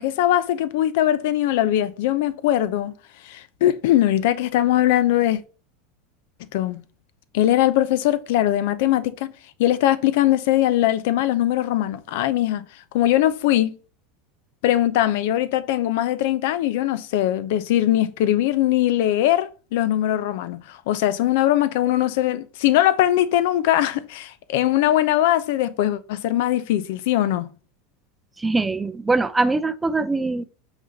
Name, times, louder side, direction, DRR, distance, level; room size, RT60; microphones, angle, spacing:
voice 1, 0.0-2.9 3.2-5.4 6.5-6.8 7.3-9.3 9.6-12.6 12.9-13.8 14.6-27.5, left 13 dB, 70° left, 0.7 m, -21 dB
voice 2, 28.4-30.4, right 3 dB, 10° right, 0.5 m, -22 dB
5.7 x 4.2 x 5.7 m
supercardioid pair, 140°, 0 cm